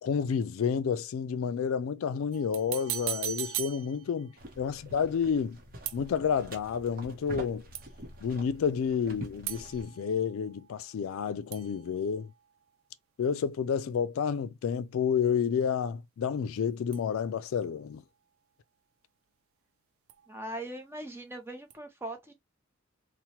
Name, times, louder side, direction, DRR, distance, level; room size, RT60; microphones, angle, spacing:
voice 1, 0.0-5.6 5.9-7.6 8.2-12.3 13.2-18.0, left 7 dB, 80° left, 0.3 m, -30 dB
sound 1, 2.3-4.4 5.9-6.5 7.7-8.2 9.5-11.2 11.5-12.7 16.9-17.7 20.1-20.7 21.7-21.8, right 11 dB, 80° right, 0.4 m, -40 dB
sound 2, 4.4-9.9, right 1 dB, 45° right, 0.8 m, -45 dB
voice 2, 20.3-22.3, right 1 dB, 10° right, 0.6 m, -40 dB
2.9 x 2.1 x 2.8 m
head